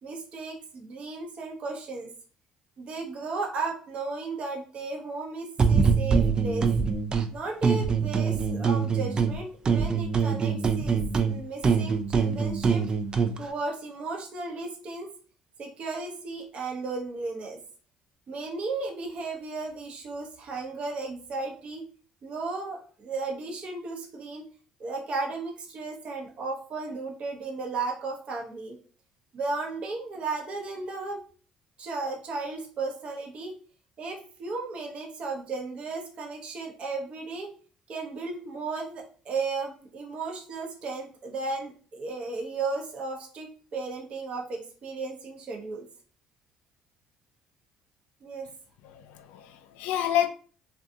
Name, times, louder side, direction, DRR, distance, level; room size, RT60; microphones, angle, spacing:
voice 1, 0.0-2.1 2.8-6.7 7.3-11.0 11.3-12.8 13.4-15.1 15.6-17.6 18.3-21.8 22.2-24.4 24.8-28.8 29.3-31.2 31.8-33.5 34.0-37.5 37.9-45.9 48.2-48.5, right 3 dB, 50° right, 0.8 m, -35 dB
sound 1, 5.6-7.3 7.6-9.4 9.6-13.4, right 5 dB, 35° right, 0.4 m, -24 dB
voice 2, 48.8-50.3, left 11 dB, 75° left, 0.3 m, -29 dB
2.4 x 2.3 x 2.6 m
hypercardioid pair, 65°, 3 cm